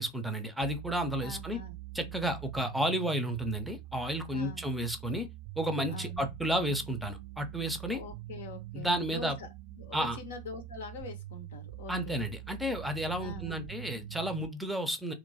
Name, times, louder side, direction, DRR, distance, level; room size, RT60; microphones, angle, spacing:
voice 1, 0.0-1.6 1.9-5.3 5.6-8.0 8.7-9.4 9.9-10.2 11.9-15.1, right 1 dB, 5° right, 0.6 m, -32 dB
sound 1, 0.6-14.5, right 18 dB, 45° right, 0.6 m, -45 dB
voice 2, 1.2-1.8 4.3-4.6 5.9-6.3 7.9-12.2 13.2-13.6, left 3 dB, 60° left, 0.8 m, -44 dB
2.9 x 2.2 x 4.0 m
figure-of-eight pair, 90°, 0 cm